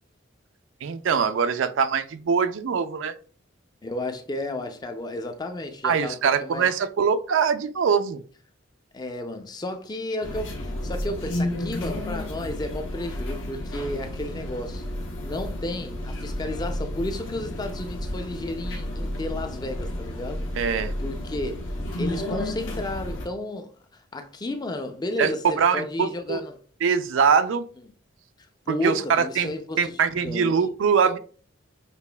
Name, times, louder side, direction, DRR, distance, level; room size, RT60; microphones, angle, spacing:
voice 1, 0.8-3.1 5.8-8.2 20.6-20.9 25.2-26.4 26.8-27.7 28.7-31.2, right 6 dB, 70° right, 0.4 m, -23 dB
voice 2, 3.8-6.7 8.9-14.8 15.2-20.5 21.0-21.7 22.0-26.6 28.7-30.6, left 1 dB, 20° left, 0.4 m, -33 dB
sound 1, 10.2-23.3, left 1 dB, 70° left, 0.9 m, -32 dB
6.7 x 2.4 x 2.3 m
head